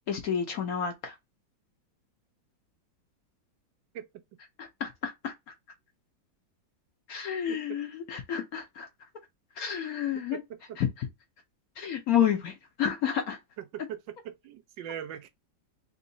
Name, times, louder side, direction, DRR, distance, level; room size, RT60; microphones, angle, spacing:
voice 1, 0.1-1.1 4.6-5.3 7.1-8.9 9.6-10.4 10.8-11.1 11.8-13.4, left 9 dB, 65° left, 1.0 m, -30 dB
voice 2, 10.3-10.8 13.7-15.3, right 9 dB, 80° right, 1.3 m, -40 dB
3.7 x 3.0 x 2.6 m
omnidirectional pair, 2.0 m